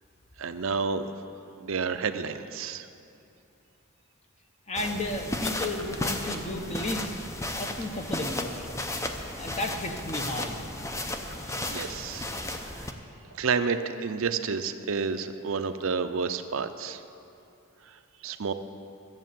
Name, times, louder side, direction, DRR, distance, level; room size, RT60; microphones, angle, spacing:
voice 1, 0.4-1.1 1.6-2.9 11.3-12.3 12.6-12.9 13.3-17.0 18.2-18.5, right 5 dB, 65° right, 9 dB, 0.6 m, -30 dB
voice 2, 4.7-7.1 7.6-8.7 9.4-10.6 11.3-11.8, left 1 dB, 30° left, 4 dB, 0.9 m, -33 dB
sound 1, 4.7-12.9, left 1 dB, 15° left, 0.5 m, -34 dB
12.5 x 7.4 x 7.5 m, 2.7 s
head